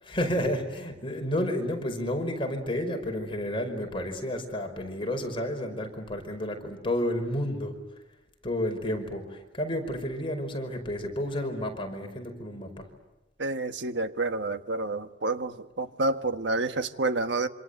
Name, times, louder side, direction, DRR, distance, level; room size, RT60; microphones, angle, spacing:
voice 1, 0.0-7.7 8.4-12.9, left 1 dB, 30° left, 5.4 m, -31 dB
voice 2, 13.4-17.5, right 2 dB, 70° right, 1.5 m, -29 dB
27.0 x 27.0 x 8.2 m
head